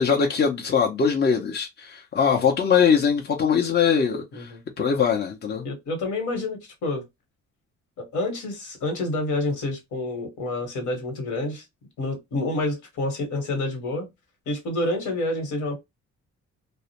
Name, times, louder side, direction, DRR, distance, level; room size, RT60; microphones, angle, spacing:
voice 1, 0.0-5.6, left 6 dB, 35° left, 0.6 m, -22 dB
voice 2, 5.6-7.0 8.0-11.6 12.0-14.1 14.5-15.7, left 2 dB, 75° left, 1.2 m, -28 dB
2.4 x 2.1 x 2.8 m
cardioid pair, 90°, 30 cm